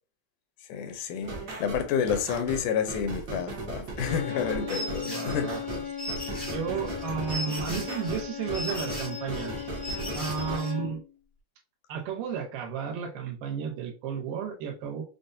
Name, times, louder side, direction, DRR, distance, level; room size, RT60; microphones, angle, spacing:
voice 1, 0.7-5.5 6.3-6.5, left 7 dB, 80° left, 2.1 m, -30 dB
sound 1, 1.2-10.6, right 2 dB, 65° right, 1.0 m, -37 dB
sound 2, 3.9-11.1, left 8 dB, 45° right, 0.6 m, -38 dB
sound 3, 4.7-10.7, equal, ahead, 0.6 m, -38 dB
voice 2, 5.0-5.6 6.4-9.5 10.1-11.0 11.9-15.0, right 7 dB, 90° right, 2.5 m, -33 dB
6.1 x 2.1 x 2.6 m
omnidirectional pair, 3.6 m